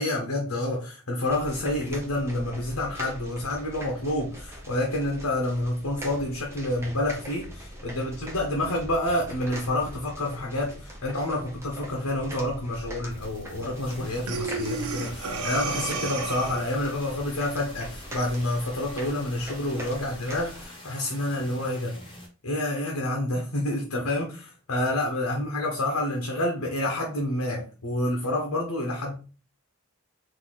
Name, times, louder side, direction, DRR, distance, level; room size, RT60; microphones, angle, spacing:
voice 1, 0.0-22.0 22.4-29.1, left 1 dB, 75° left, 1.0 m, -28 dB
sound 1, 1.2-20.7, equal, 10° right, 0.8 m, -42 dB
sound 2, 13.1-22.3, left 1 dB, 20° left, 0.9 m, -46 dB
Breathing, 14.3-16.8, right 4 dB, 85° right, 0.6 m, -31 dB
4.1 x 2.7 x 4.0 m
head